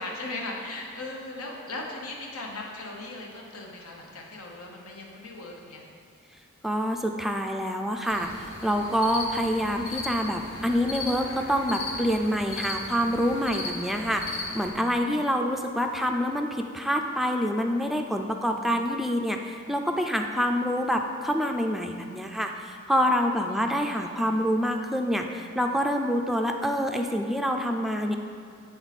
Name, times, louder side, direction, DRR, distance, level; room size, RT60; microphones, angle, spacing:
voice 1, 0.0-5.8 13.5-14.1 23.5-24.2, left 2 dB, 85° left, -1 dB, 1.0 m, -39 dB
voice 2, 6.6-28.2, equal, ahead, 3 dB, 0.3 m, -26 dB
sound 1, 8.0-14.7, left 2 dB, 70° left, 1.4 m, -37 dB
8.6 x 3.9 x 4.1 m, 2.4 s
head